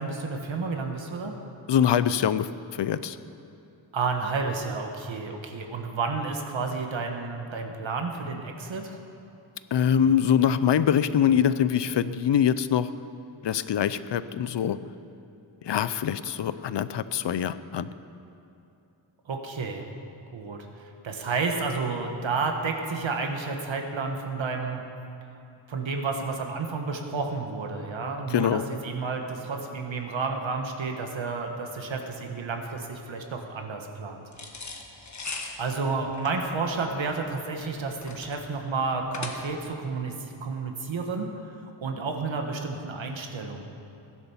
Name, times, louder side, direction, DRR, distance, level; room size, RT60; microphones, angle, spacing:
voice 1, 0.0-1.4 3.9-9.0 19.3-19.9 20.3-24.8 25.7-34.2 35.6-41.5 41.8-43.6, right 4 dB, 70° right, 3 dB, 1.5 m, -31 dB
voice 2, 1.7-3.2 9.7-12.9 13.4-14.8 15.6-17.9 28.3-28.6, left 9 dB, 60° left, 14 dB, 0.6 m, -24 dB
sound 1, 34.3-39.8, left 3 dB, 35° left, 1.5 m, -39 dB
16.0 x 11.0 x 7.1 m, 2.8 s
wide cardioid pair, 140°, 47 cm